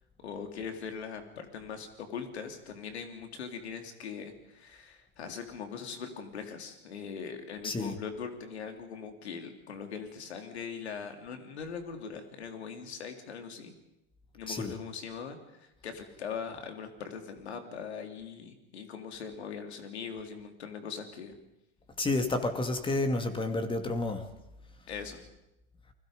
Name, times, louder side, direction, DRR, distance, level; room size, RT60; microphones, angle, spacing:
voice 1, 0.2-13.8 14.3-21.4 24.9-25.2, left 6 dB, 90° left, 6 dB, 3.5 m, -41 dB
voice 2, 7.6-7.9 14.5-14.7 22.0-24.2, left 2 dB, 15° left, 7 dB, 2.5 m, -30 dB
30.0 x 21.0 x 5.3 m, 0.91 s
hypercardioid pair, 115°, 32 cm